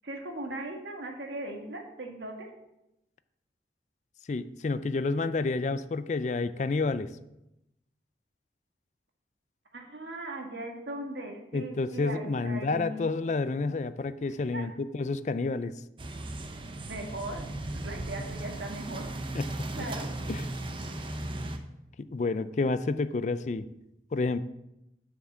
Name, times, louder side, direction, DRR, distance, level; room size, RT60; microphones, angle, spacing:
voice 1, 0.0-2.5 9.7-13.2 14.5-14.7 16.9-19.0 19.7-20.1, right 1 dB, 85° right, 2 dB, 1.7 m, -39 dB
voice 2, 4.3-7.1 11.5-15.7 19.3-19.5 20.3-20.4 22.0-23.6 24.1-24.4, left 3 dB, 40° left, 14 dB, 0.4 m, -29 dB
sound 1, 16.0-21.6, right 1 dB, 30° right, 0.7 m, -36 dB
8.0 x 6.0 x 6.1 m, 0.87 s
head